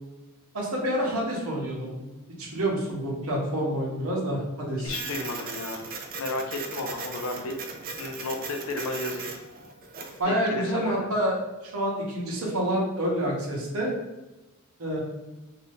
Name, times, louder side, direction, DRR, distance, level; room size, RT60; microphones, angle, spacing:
voice 1, 0.5-2.1 2.4-4.9 10.2-11.4 11.6-14.0 14.8-15.0, equal, 70° right, -2 dB, 0.9 m, -28 dB
voice 2, 4.8-5.8 6.2-7.6 7.9-9.3 10.3-11.1, left 2 dB, 65° left, 4 dB, 0.5 m, -33 dB
Printer, 4.9-10.2, right 4 dB, 40° right, 0.4 m, -38 dB
2.7 x 2.3 x 3.4 m, 1.1 s
head